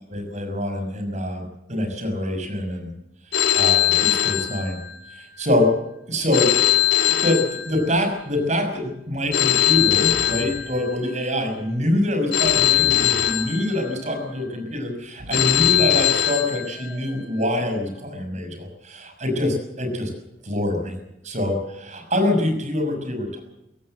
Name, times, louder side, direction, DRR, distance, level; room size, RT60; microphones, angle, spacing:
voice 1, 0.1-2.9 3.5-4.8 5.1-5.7 6.1-6.5 7.0-20.1 20.4-21.0 21.2-23.4, left 1 dB, 40° right, 5 dB, 6.3 m, -25 dB
Telephone, 3.3-5.2 6.3-8.2 9.3-11.2 12.3-14.2 15.3-17.2, left 12 dB, 75° left, 3.7 m, -21 dB
Breathing, 7.5-7.8 8.2-8.3 9.1-9.3 9.6-10.6 11.2-11.8 12.3-13.3 13.9-14.5 15.0-16.1 16.6-17.3, equal, 65° right, 7.3 m, -40 dB
23.5 x 17.0 x 7.9 m, 0.89 s
head